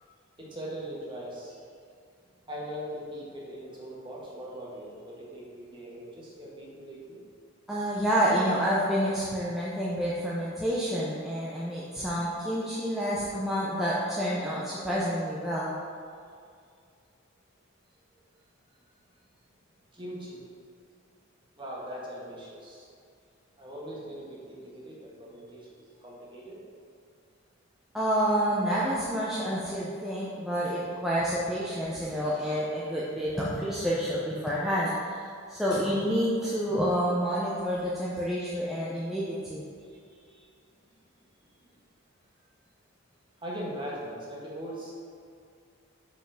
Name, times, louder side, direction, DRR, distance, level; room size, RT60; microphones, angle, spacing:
voice 1, 0.4-1.6 2.5-7.2 18.7-18.8 19.9-20.4 21.6-22.9 23.6-26.6 39.8-40.5 40.8-41.0 41.5-41.7 43.4-44.9, equal, 25° right, -5 dB, 1.6 m, -41 dB
voice 2, 7.7-15.7 27.9-39.7, equal, ahead, -7 dB, 0.6 m, -28 dB
5.8 x 5.2 x 5.6 m, 2.3 s
head